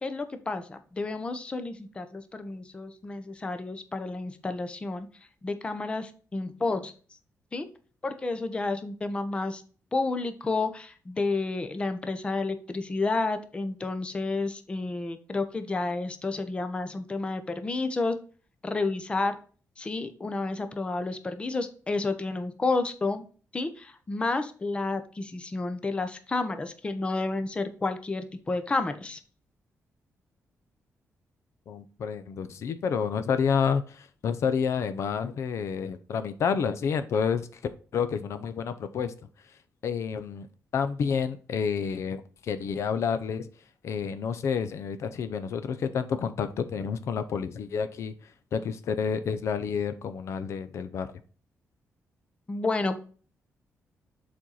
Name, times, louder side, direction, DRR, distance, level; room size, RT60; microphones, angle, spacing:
voice 1, 0.0-5.1 5.4-6.9 7.5-7.7 8.0-9.6 9.9-18.2 18.6-19.4 19.8-23.2 23.5-29.2 52.5-53.0, left 3 dB, 20° left, 0.7 m, -30 dB
voice 2, 31.7-37.5 37.9-39.1 39.8-40.5 40.7-43.5 43.8-48.1 48.5-51.1, left 6 dB, 60° left, 0.6 m, -29 dB
7.4 x 4.3 x 3.9 m
wide cardioid pair, 165°, 5 cm